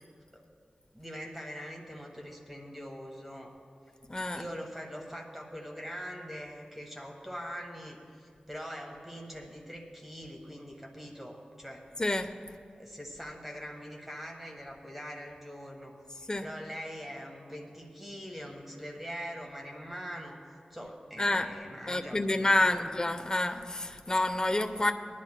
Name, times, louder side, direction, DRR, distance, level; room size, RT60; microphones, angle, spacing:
voice 1, 0.9-3.5 4.3-11.8 12.7-15.9 16.4-20.4 20.7-22.9, equal, 5° right, 0 dB, 1.5 m, -43 dB
voice 2, 4.1-4.4 12.0-12.3 16.3-16.5 21.2-21.5 21.9-24.9, left 1 dB, 30° left, 7 dB, 0.7 m, -28 dB
22.0 x 11.0 x 2.2 m, 2.2 s
wide cardioid pair, 65°, 3 cm